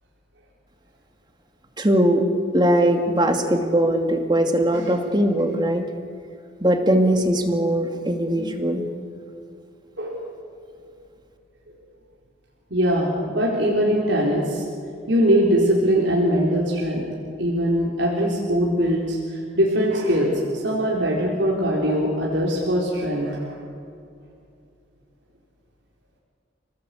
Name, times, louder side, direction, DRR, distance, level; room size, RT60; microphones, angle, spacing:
voice 1, 1.8-2.2 2.5-5.8 6.6-8.9, right 1 dB, 25° right, 5 dB, 2.4 m, -20 dB
voice 2, 12.7-14.6 15.1-17.1 17.4-23.5, equal, 70° right, -3 dB, 4.2 m, -21 dB
30.0 x 19.0 x 8.5 m, 2.4 s
head